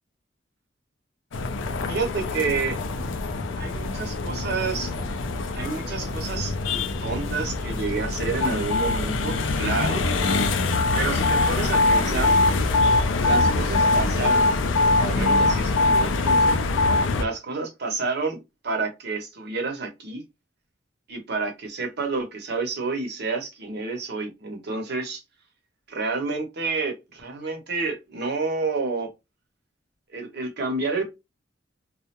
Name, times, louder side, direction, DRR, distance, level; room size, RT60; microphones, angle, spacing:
sound 1, 1.3-17.2, left 2 dB, 80° left, 0.5 m, -23 dB
voice 1, 1.9-2.8 3.6-4.9 5.5-6.5 7.0-10.0 10.9-12.4 13.2-14.5 15.0-16.6 17.2-18.4 18.6-20.2 21.1-25.2 25.9-29.1 30.1-31.1, right 4 dB, 60° right, 0.8 m, -29 dB
2.3 x 2.0 x 2.9 m
head